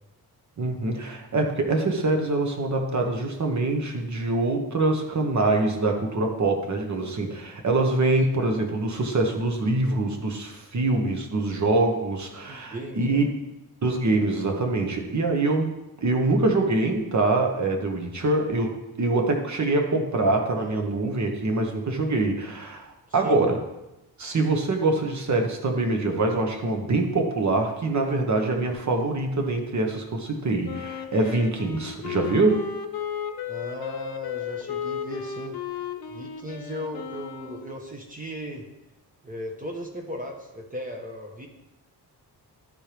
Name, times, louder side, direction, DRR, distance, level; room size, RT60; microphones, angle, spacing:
voice 1, 0.6-13.3 13.8-23.6 24.2-32.6, right 2 dB, 45° right, 3 dB, 1.3 m, -24 dB
voice 2, 12.4-13.3 23.2-23.4 33.5-38.7 39.2-41.5, equal, 20° right, 1 dB, 1.1 m, -37 dB
Wind instrument woodwind instrument, 30.6-37.8, left 8 dB, 70° left, 0.7 m, -34 dB
12.0 x 4.5 x 3.4 m, 0.94 s
cardioid pair, 100°, 39 cm